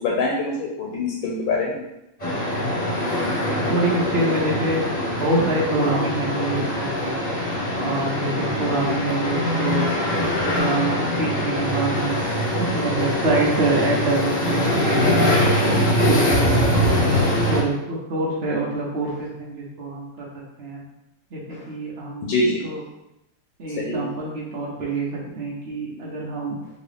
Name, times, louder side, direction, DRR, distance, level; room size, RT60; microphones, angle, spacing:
voice 1, 0.0-1.9 21.5-21.7 22.2-22.6 23.8-24.0, left 2 dB, 75° left, -1 dB, 1.3 m, -24 dB
sound 1, 2.2-17.6, left 1 dB, 25° left, 1.0 m, -23 dB
voice 2, 3.7-4.8 5.2-7.3 7.7-12.2 12.6-16.9 17.5-20.3 20.6-20.8 21.3-22.8 23.6-26.6, right 2 dB, 65° right, -4 dB, 0.6 m, -26 dB
3.8 x 2.9 x 3.3 m, 0.88 s
omnidirectional pair, 2.2 m